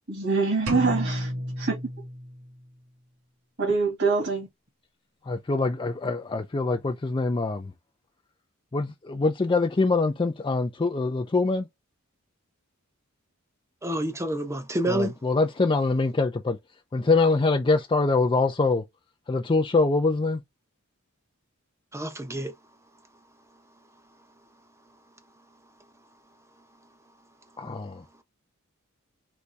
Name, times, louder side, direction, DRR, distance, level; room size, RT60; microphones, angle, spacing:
voice 1, 0.1-1.3 1.6-1.8 3.6-4.5, right 4 dB, 55° right, 2.1 m, -24 dB
sound 1, 0.7-2.6, equal, 70° right, 1.7 m, -31 dB
voice 2, 5.3-7.7 8.7-11.7 14.9-16.6 16.9-18.8 19.3-20.4 27.6-28.0, left 3 dB, 25° left, 0.4 m, -24 dB
voice 3, 13.8-15.1 21.9-22.5, right 1 dB, 15° right, 0.8 m, -28 dB
4.1 x 3.5 x 3.3 m
head